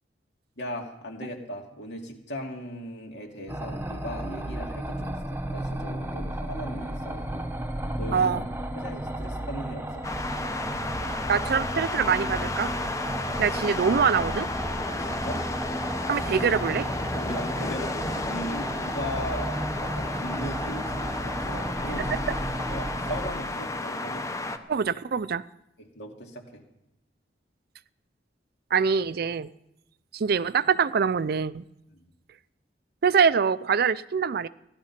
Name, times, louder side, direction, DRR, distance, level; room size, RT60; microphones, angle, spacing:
voice 1, 0.6-7.5 8.0-8.5 8.7-10.0 14.9-15.4 17.1-24.2 25.8-26.6 31.9-32.1, equal, 70° left, 2.5 m, -38 dB
sound 1, 3.5-23.3, right 1 dB, 10° right, 0.9 m, -34 dB
voice 2, 8.1-8.4 11.3-12.7 13.4-14.5 16.1-16.9 24.7-25.4 28.7-29.5 30.1-31.6 33.0-34.5, right 6 dB, 60° right, 0.4 m, -24 dB
sound 2, 10.0-24.6, left 2 dB, 20° left, 0.8 m, -32 dB
15.5 x 11.5 x 5.8 m
head